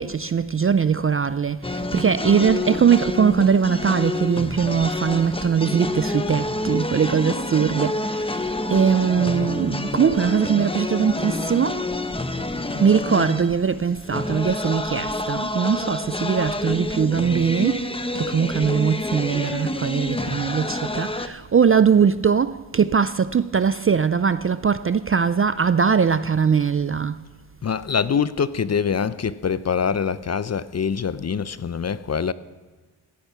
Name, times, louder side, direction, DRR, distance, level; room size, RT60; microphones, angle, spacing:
voice 1, 0.0-11.9 12.8-27.2, right 6 dB, 30° right, 0.4 m, -21 dB
sound 1, 1.6-21.3, left 2 dB, 10° left, 0.9 m, -28 dB
voice 2, 27.6-32.3, left 6 dB, 35° left, 0.5 m, -24 dB
16.0 x 10.5 x 5.6 m
cardioid pair, 65°, 48 cm